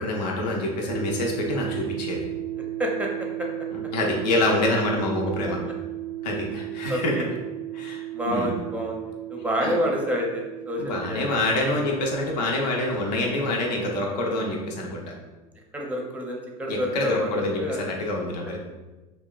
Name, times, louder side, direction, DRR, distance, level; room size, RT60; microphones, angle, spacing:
voice 1, 0.0-2.2 3.7-5.6 6.2-7.1 7.7-8.6 9.6-9.7 10.8-15.1 16.7-18.6, left 1 dB, 80° left, 0 dB, 0.6 m, -26 dB
sound 1, 0.9-14.8, right 14 dB, 85° right, 0.4 m, -36 dB
voice 2, 6.9-7.3 8.1-11.2 15.7-17.9, equal, 5° right, 0 dB, 0.5 m, -28 dB
2.7 x 2.2 x 2.3 m, 1.2 s
hypercardioid pair, 85°, 21 cm